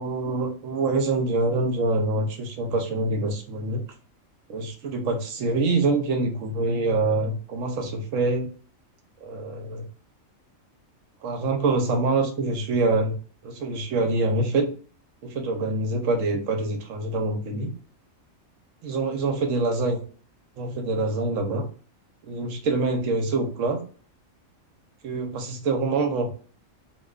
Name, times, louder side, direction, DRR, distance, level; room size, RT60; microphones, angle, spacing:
voice 1, 0.0-3.8 4.5-8.5 9.2-9.9 11.2-13.2 13.4-14.7 15.2-17.7 18.8-20.0 20.6-21.7 22.2-23.8 25.0-26.3, right 3 dB, 75° right, 4 dB, 1.0 m, -25 dB
2.7 x 2.3 x 2.3 m, 0.41 s
omnidirectional pair, 1.4 m